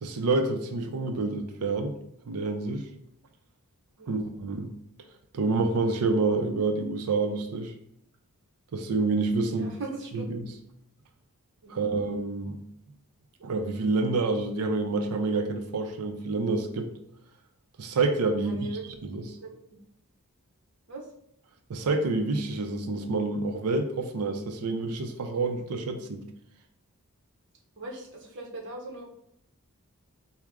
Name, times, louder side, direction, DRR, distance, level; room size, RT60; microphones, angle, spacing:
voice 1, 0.0-1.9 2.3-2.9 4.1-4.7 5.3-7.7 8.7-9.7 10.1-10.5 11.7-12.6 13.4-16.9 17.8-18.6 19.1-19.2 21.7-26.2, right 3 dB, 85° right, 6 dB, 0.5 m, -28 dB
voice 2, 9.5-10.3 11.6-11.8 18.3-18.9 19.4-19.8 20.9-21.1 27.8-29.3, right 2 dB, 55° right, 0 dB, 0.9 m, -40 dB
4.6 x 2.1 x 3.6 m, 0.73 s
head